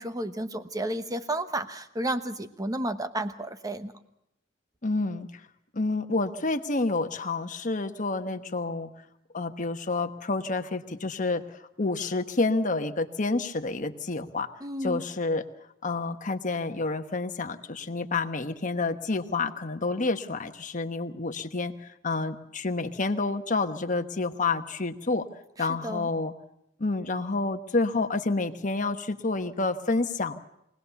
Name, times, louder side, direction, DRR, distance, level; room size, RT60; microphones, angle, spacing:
voice 1, 0.0-3.9 14.6-15.1 25.6-26.1, right 1 dB, 20° right, 10 dB, 1.1 m, -32 dB
voice 2, 4.8-5.3 5.7-8.9 9.3-11.4 11.8-14.5 14.8-15.4 15.8-21.7 22.0-25.3 25.6-26.3 26.8-30.4, left 3 dB, 40° left, 7 dB, 1.2 m, -29 dB
23.5 x 18.5 x 7.0 m, 0.81 s
head